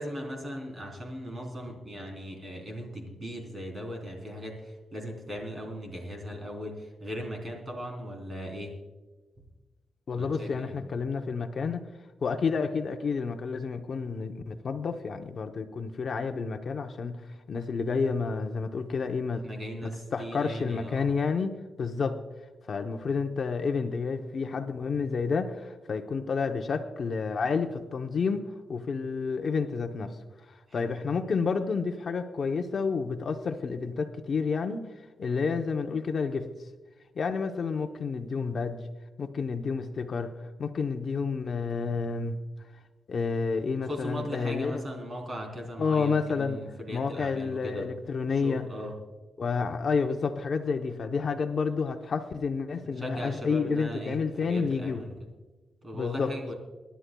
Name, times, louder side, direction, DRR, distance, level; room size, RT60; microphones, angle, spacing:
voice 1, 0.0-8.7 10.1-10.8 19.4-21.1 30.7-30.9 35.2-35.4 43.8-47.9 48.3-48.9 53.0-55.2 55.8-56.5, equal, 25° right, 1 dB, 3.5 m, -38 dB
voice 2, 10.1-11.8 12.2-19.4 20.1-22.2 22.7-28.4 28.7-30.2 30.5-34.9 35.2-36.5 37.2-38.8 39.2-40.3 40.6-42.4 43.1-44.8 45.8-46.6 46.9-48.7 49.4-55.0 55.9-56.3, left 5 dB, 50° left, 5 dB, 0.8 m, -30 dB
27.0 x 11.5 x 2.3 m, 1.3 s
wide cardioid pair, 135°, 0 cm